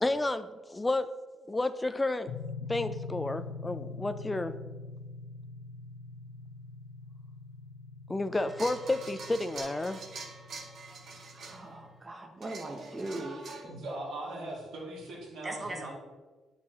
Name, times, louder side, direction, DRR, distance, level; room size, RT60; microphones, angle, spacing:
voice 1, 0.0-1.1 1.5-2.3 2.7-4.5 8.1-10.0, left 2 dB, 20° left, 10 dB, 0.3 m, -31 dB
sound 1, 2.3-12.0, left 4 dB, 85° left, 0.4 m, -44 dB
sound 2, 8.3-11.8 12.4-13.6, right 3 dB, 60° right, 1.2 m, -45 dB
voice 2, 11.3-13.4 15.4-15.9, right 2 dB, 20° right, 3 dB, 1.0 m, -39 dB
voice 3, 13.7-15.9, right 1 dB, 80° right, -3 dB, 2.2 m, -40 dB
9.2 x 4.8 x 2.9 m, 1.3 s
cardioid pair, 90°, 0 cm